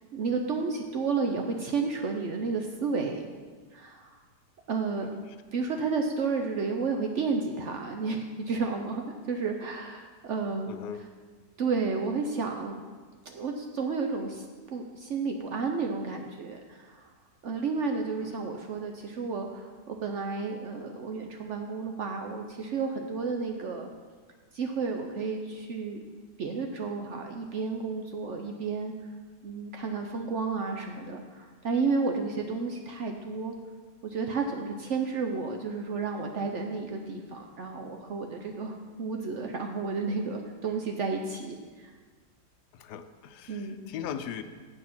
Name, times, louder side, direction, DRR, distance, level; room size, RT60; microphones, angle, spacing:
voice 1, 0.1-3.2 3.7-4.2 4.7-5.1 5.5-10.7 11.6-12.8 13.3-14.4 14.7-17.1 17.4-23.9 24.5-26.0 26.4-28.9 29.4-33.5 34.0-41.9 43.5-43.8, right 4 dB, 60° right, 3 dB, 0.8 m, -32 dB
voice 2, 10.7-11.0 18.2-18.3 42.7-44.4, left 8 dB, 80° left, 9 dB, 1.2 m, -39 dB
7.9 x 6.4 x 5.8 m, 1.5 s
omnidirectional pair, 1.8 m